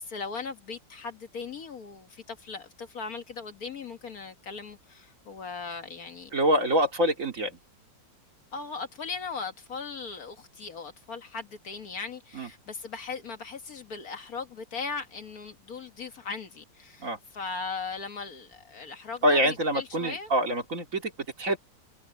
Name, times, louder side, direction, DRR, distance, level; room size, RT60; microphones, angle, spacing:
voice 1, 0.0-6.3 8.5-20.3, left 5 dB, 55° left, 1.6 m, -38 dB
voice 2, 6.3-7.6 12.3-12.5 17.0-17.2 19.2-21.1 21.4-21.6, equal, 45° right, 2.8 m, -25 dB
omnidirectional pair, 2.0 m